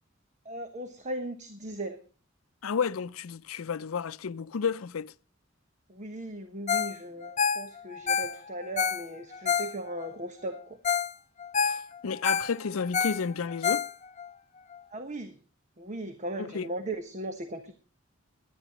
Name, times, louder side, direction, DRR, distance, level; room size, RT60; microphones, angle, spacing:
voice 1, 0.4-2.0 5.9-10.8 14.9-15.3 15.8-17.7, right 1 dB, 35° right, 1.1 m, -37 dB
voice 2, 2.6-5.1 11.6-13.9 16.4-16.7, left 6 dB, 85° left, 0.5 m, -32 dB
Ringtone, 6.7-7.0 7.2-10.1 10.5-10.6 10.8-11.1 11.4-14.3 14.7-14.8, left 6 dB, 35° left, 0.6 m, -28 dB
21.0 x 10.0 x 3.0 m
head